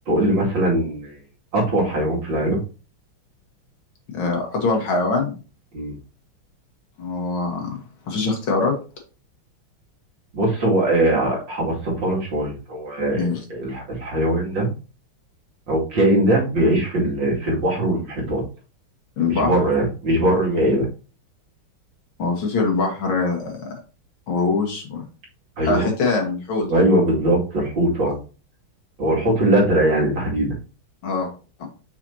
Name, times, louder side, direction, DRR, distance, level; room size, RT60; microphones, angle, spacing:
voice 1, 0.1-1.2 1.5-2.6 5.7-5.9 10.3-14.7 15.7-18.4 19.3-20.9 25.6-25.9 26.7-28.1 29.0-30.5, right 1 dB, 60° right, -3 dB, 3.1 m, -21 dB
voice 2, 4.1-5.3 7.0-7.8 8.1-8.8 13.1-13.4 19.2-19.5 22.2-23.7 24.3-25.0 25.6-26.7 26.9-27.0 31.0-31.3, left 3 dB, 70° left, 2 dB, 2.5 m, -23 dB
6.4 x 5.9 x 2.8 m, 0.33 s
omnidirectional pair, 2.3 m